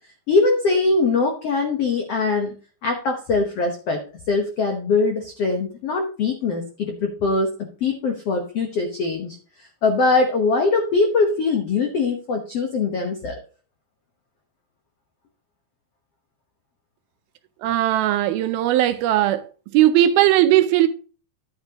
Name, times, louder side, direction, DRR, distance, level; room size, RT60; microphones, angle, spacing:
voice 1, 0.3-2.5 2.8-4.0 4.3-7.5 7.8-13.4, left 3 dB, 80° left, 1.3 m, -22 dB
voice 2, 17.6-19.5 19.7-20.9, right 13 dB, 80° right, 2.4 m, -18 dB
11.5 x 8.7 x 2.9 m
omnidirectional pair, 4.6 m